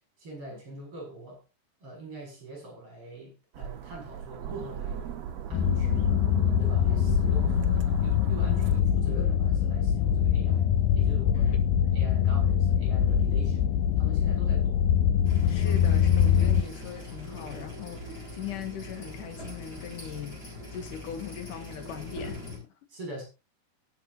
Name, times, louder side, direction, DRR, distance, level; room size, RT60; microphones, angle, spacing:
voice 1, 0.2-1.4 1.8-5.1 5.5-6.3 6.6-10.7 10.9-11.6 11.9-13.7 14.0-14.8 22.9-23.2, right 2 dB, 35° right, 7.9 m, -43 dB
sound 1, 3.5-8.8, right 9 dB, 80° right, 1.4 m, -37 dB
sound 2, 5.5-16.6, left 9 dB, 85° left, 1.8 m, -23 dB
sound 3, 15.2-22.6, left 1 dB, 25° left, 6.2 m, -41 dB
voice 2, 15.5-20.4 20.7-22.7, left 9 dB, 60° left, 3.0 m, -40 dB
22.5 x 8.1 x 2.7 m
omnidirectional pair, 4.6 m